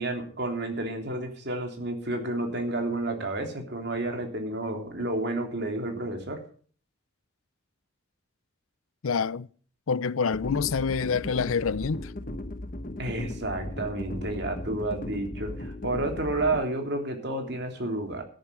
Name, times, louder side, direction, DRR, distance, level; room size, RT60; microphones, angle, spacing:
voice 1, 0.0-6.4 13.0-18.2, right 2 dB, 55° right, 3.2 m, -30 dB
voice 2, 9.0-9.5 9.9-12.1, left 5 dB, 90° left, 0.6 m, -27 dB
sound 1, 10.3-16.6, left 1 dB, 40° left, 1.1 m, -37 dB
13.5 x 11.0 x 5.1 m
head